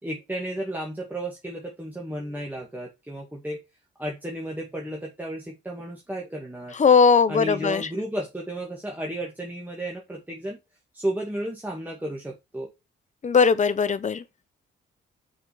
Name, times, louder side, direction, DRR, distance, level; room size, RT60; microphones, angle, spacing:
voice 1, 0.0-3.6 4.0-6.8 7.3-10.6 10.9-12.7, right 1 dB, 10° right, 2.1 m, -33 dB
voice 2, 6.8-7.8 13.2-14.2, left 5 dB, 35° left, 0.9 m, -19 dB
6.1 x 5.4 x 5.1 m
cardioid pair, 90°, 20 cm